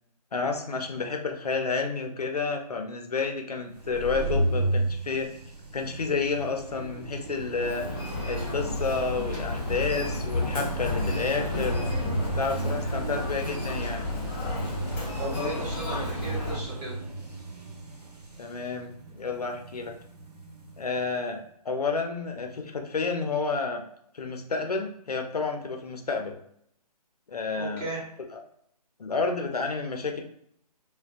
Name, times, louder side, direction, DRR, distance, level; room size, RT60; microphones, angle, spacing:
voice 1, 0.3-5.3 5.7-7.9 8.3-11.9 12.4-14.1 18.4-19.9 20.8-21.4 21.6-23.8 24.1-26.4 27.3-27.8 28.3-28.4 29.0-30.2, left 4 dB, 70° left, 4 dB, 0.5 m, -30 dB
sound 1, 3.7-21.1, right 2 dB, 85° right, 0.6 m, -34 dB
Human voice, 7.6-16.6, left 2 dB, 10° left, 1.0 m, -32 dB
voice 2, 15.2-17.0 27.5-28.0, right 1 dB, 20° right, -6 dB, 0.8 m, -35 dB
2.5 x 2.2 x 2.3 m, 0.71 s
figure-of-eight pair, 140°, 20 cm